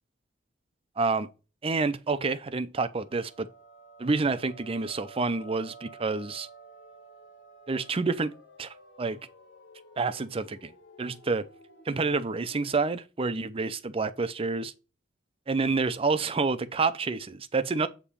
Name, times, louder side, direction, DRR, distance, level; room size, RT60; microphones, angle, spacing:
voice 1, 1.0-1.3 1.6-3.5 4.0-6.5 7.7-8.3 8.6-9.2 10.0-10.7 11.0-11.5 11.9-14.7 15.5-17.9, right 4 dB, 30° right, 0.5 m, -28 dB
sound 1, 3.0-12.8, right 2 dB, 85° left, 1.4 m, -52 dB
8.4 x 3.0 x 5.5 m
head